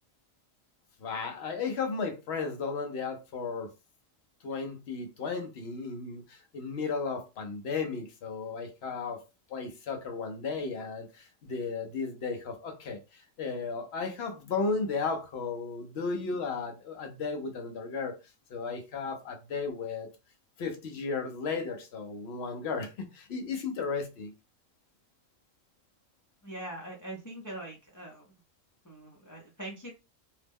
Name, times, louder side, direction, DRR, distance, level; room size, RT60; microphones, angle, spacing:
voice 1, 1.0-3.7 4.4-9.2 9.5-18.2 18.5-20.1 20.6-24.3, left 4 dB, 55° left, 0.9 m, -34 dB
voice 2, 26.4-28.3 28.8-29.9, right 1 dB, 30° left, 0.3 m, -42 dB
2.9 x 2.0 x 3.5 m
omnidirectional pair, 1.4 m